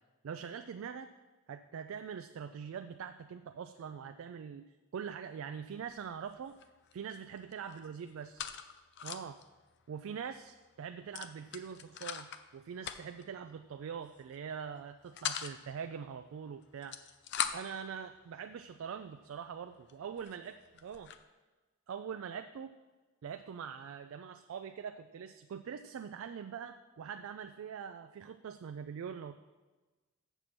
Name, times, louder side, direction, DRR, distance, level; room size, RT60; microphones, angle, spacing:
voice 1, 0.2-1.1 1.5-6.6 6.9-8.5 9.0-9.4 9.9-17.0 17.5-21.1 21.9-22.7 23.2-29.4, right 7 dB, 70° right, 9 dB, 0.3 m, -43 dB
sound 1, 5.7-6.0 6.3-7.1 7.4-9.4 9.8-9.9 10.2-10.4 11.1-12.4 12.8-13.3 14.1-14.4 14.8-15.6 16.6-17.8 18.5-18.6 19.2-19.3 19.9-20.0 20.2-21.2, left 9 dB, 55° left, 0.5 m, -40 dB
7.2 x 6.8 x 5.9 m, 1.3 s
head